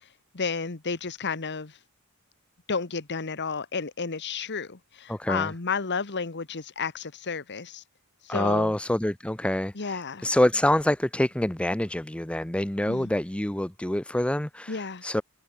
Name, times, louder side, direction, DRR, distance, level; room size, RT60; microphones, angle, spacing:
voice 1, 0.3-1.8 2.7-7.8 8.2-8.7 9.7-10.3 12.9-13.1 14.7-15.0, left 5 dB, 50° left, 1.3 m, -32 dB
voice 2, 5.1-5.5 8.3-15.2, left 1 dB, 5° left, 0.5 m, -26 dB
head